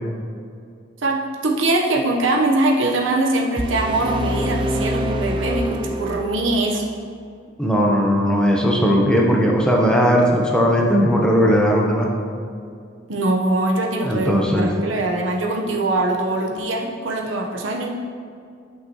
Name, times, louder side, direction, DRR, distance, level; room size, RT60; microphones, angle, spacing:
voice 1, 1.0-6.8 13.1-17.9, right 2 dB, 90° right, 0 dB, 1.0 m, -22 dB
sound 1, 3.6-6.6, equal, 25° right, 0.5 m, -26 dB
voice 2, 7.6-12.1 14.0-14.7, equal, 5° left, -2 dB, 0.8 m, -17 dB
11.0 x 5.9 x 3.0 m, 2.3 s
head